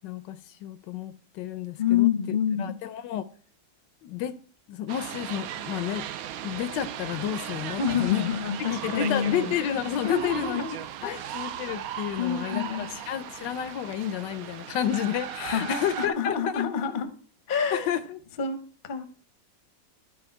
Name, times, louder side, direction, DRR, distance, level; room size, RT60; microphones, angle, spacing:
voice 1, 0.0-2.1 2.6-3.3 4.0-4.3 4.7-6.1 6.4-8.2 8.7-10.6 11.0-16.6 17.7-18.2, left 10 dB, 80° left, 1.3 m, -31 dB
voice 2, 1.8-2.8 7.8-9.5 10.0-11.3 12.2-12.9 15.4-17.1 17.5-17.9 18.4-18.6 18.8-19.0, left 8 dB, 40° left, 0.8 m, -28 dB
sound 1, 4.9-16.1, right 10 dB, 70° right, 0.9 m, -37 dB
12.5 x 4.9 x 4.4 m
omnidirectional pair, 1.9 m